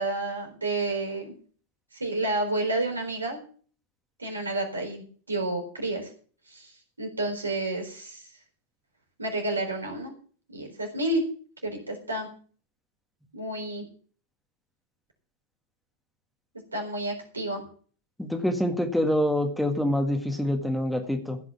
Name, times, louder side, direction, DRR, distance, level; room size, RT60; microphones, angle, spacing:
voice 1, 0.0-1.3 1.9-3.4 4.2-6.1 6.5-6.7 7.0-8.2 9.2-10.1 10.5-11.2 11.6-12.3 13.3-13.9 16.7-17.6, right 2 dB, 80° right, 2 dB, 4.1 m, -30 dB
voice 2, 18.2-21.4, left 1 dB, ahead, 5 dB, 1.8 m, -26 dB
15.5 x 6.1 x 7.2 m, 0.43 s
figure-of-eight pair, 90°, 0 cm